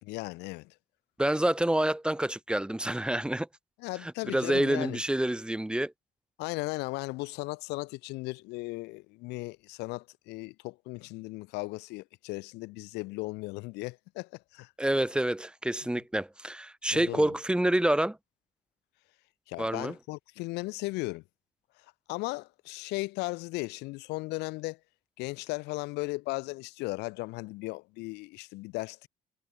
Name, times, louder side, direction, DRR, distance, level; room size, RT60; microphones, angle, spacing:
voice 1, 0.0-0.7 3.8-5.0 6.4-14.7 16.9-17.3 19.5-21.2 21.8-24.8 25.2-29.1, left 23 dB, 90° left, 0.4 m, -36 dB
voice 2, 1.2-3.5 4.3-5.9 14.8-18.2 19.6-19.9, right 1 dB, 5° right, 0.9 m, -27 dB
cardioid pair, 110°, 17 cm